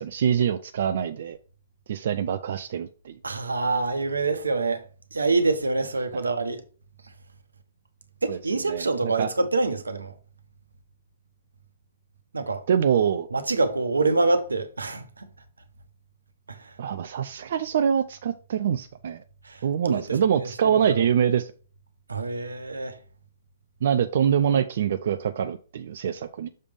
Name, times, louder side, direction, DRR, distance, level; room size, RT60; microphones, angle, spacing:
voice 1, 0.0-1.4 1.9-3.1 8.3-8.4 8.7-9.3 12.7-13.3 16.8-19.2 19.6-21.5 23.8-26.5, right 8 dB, 60° right, 0.5 m, -24 dB
voice 2, 3.2-4.8 5.1-6.6 7.0-7.1 8.2-10.1 12.3-12.6 13.3-15.3 16.5-16.8 19.4-21.1 22.1-23.0, right 3 dB, 90° right, 1.1 m, -26 dB
6.6 x 3.4 x 5.3 m
hypercardioid pair, 130°, 0 cm